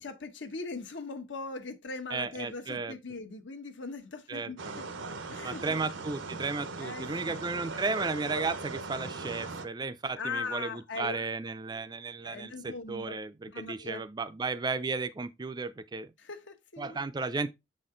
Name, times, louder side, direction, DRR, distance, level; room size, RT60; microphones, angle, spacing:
voice 1, 0.0-4.6 5.3-5.8 6.8-7.4 10.2-11.2 12.2-13.2 13.5-14.0 16.2-17.0, left 3 dB, 75° left, 1.1 m, -40 dB
voice 2, 2.1-3.0 4.3-4.8 5.4-16.1 16.8-17.5, right 4 dB, 20° right, 0.4 m, -34 dB
sound 1, 4.6-9.7, right 3 dB, 85° right, 0.8 m, -39 dB
6.7 x 4.2 x 3.7 m
head